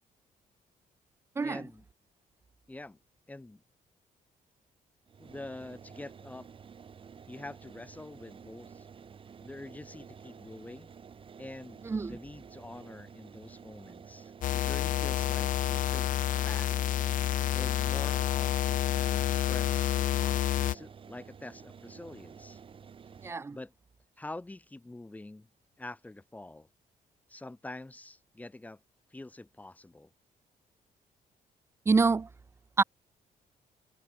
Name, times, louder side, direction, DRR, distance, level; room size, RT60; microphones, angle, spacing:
voice 1, 1.4-1.8 2.7-3.0 3.3-3.6 5.2-6.5 7.3-8.9 9.4-10.9 11.4-16.1 16.4-16.7 17.5-18.5 19.0-22.6 23.5-23.7 24.2-25.5 25.8-26.7 27.3-28.8 29.1-30.1, left 2 dB, 10° left, 5.8 m, -46 dB
sound 1, 5.1-23.3, right 6 dB, 35° right, 7.7 m, -51 dB
voice 2, 11.8-12.2 23.2-23.6 31.9-32.3 32.8-32.9, right 4 dB, 15° right, 0.5 m, -26 dB
sound 2, 14.4-20.8, left 12 dB, 60° left, 0.8 m, -29 dB
cardioid pair, 160°, 15 cm